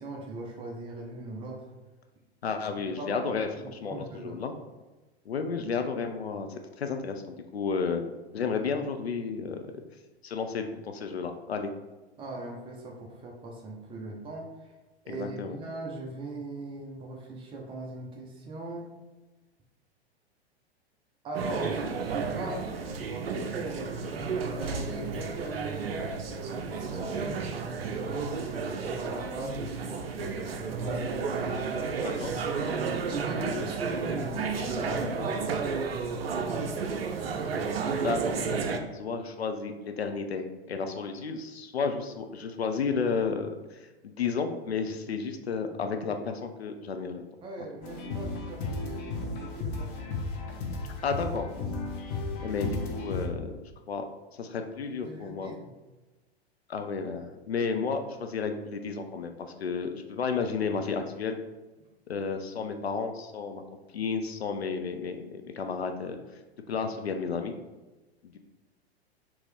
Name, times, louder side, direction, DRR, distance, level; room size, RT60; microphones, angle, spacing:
voice 1, 0.0-1.7 2.8-3.3 3.6-4.4 12.2-14.8 15.0-18.9 21.2-22.7 23.3-23.9 24.5-31.2 33.1-36.0 47.4-50.5 55.0-55.7, right 2 dB, 15° right, 0 dB, 0.6 m, -39 dB
voice 2, 2.4-4.5 5.3-8.0 8.3-9.6 10.2-11.7 15.1-15.6 32.0-32.3 37.9-47.2 51.0-51.4 52.4-53.5 53.9-54.0 54.4-55.5 56.7-61.4 62.1-63.6 63.9-66.2 66.7-67.5 68.2-68.4, left 5 dB, 75° left, 6 dB, 0.5 m, -32 dB
sound 1, 21.3-38.8, right 5 dB, 65° right, 0.5 m, -32 dB
sound 2, 47.8-53.3, left 3 dB, 30° left, 0.7 m, -34 dB
4.4 x 2.9 x 3.2 m, 1.1 s
figure-of-eight pair, 100°, 32 cm